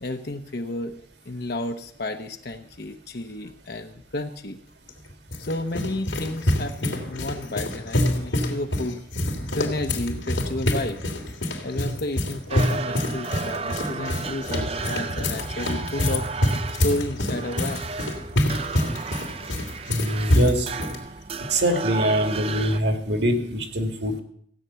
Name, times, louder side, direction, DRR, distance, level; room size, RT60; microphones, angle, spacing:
voice 1, 0.0-4.6 5.4-9.0 9.5-11.0 11.6-16.3 16.8-17.8, left 2 dB, 55° left, 6 dB, 0.9 m, -32 dB
sound 1, 4.9-21.0, left 1 dB, 80° left, 2.9 m, -26 dB
sound 2, 12.5-22.8, right 4 dB, 30° right, 0.5 m, -33 dB
voice 2, 19.9-20.7 21.5-24.2, equal, 65° right, 6 dB, 2.0 m, -23 dB
16.0 x 9.0 x 6.9 m, 0.64 s
head